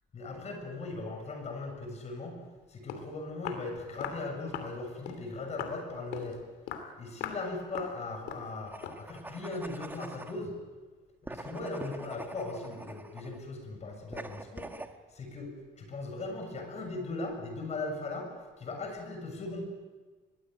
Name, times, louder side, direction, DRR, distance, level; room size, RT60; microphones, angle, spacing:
voice 1, 0.1-2.4 2.7-6.4 7.0-10.5 11.2-14.7 15.1-15.5 15.8-18.3 18.6-19.6, left 3 dB, 40° left, 4 dB, 7.1 m, -38 dB
Walk footsteps, 2.6-2.7 2.9-3.1 3.5-3.7 4.0-4.2 4.5-4.7 5.1-5.2 5.6-5.8 6.1-6.3 6.7-6.9 7.2-7.5 7.8-8.0 8.3-8.5 8.8-9.0, left 8 dB, 85° left, 3.0 m, -39 dB
sound 1, 8.7-10.4 11.2-13.4 14.1-14.9, right 2 dB, 10° right, 1.6 m, -44 dB
23.5 x 18.5 x 9.2 m, 1.4 s
cardioid pair, 110°, 17 cm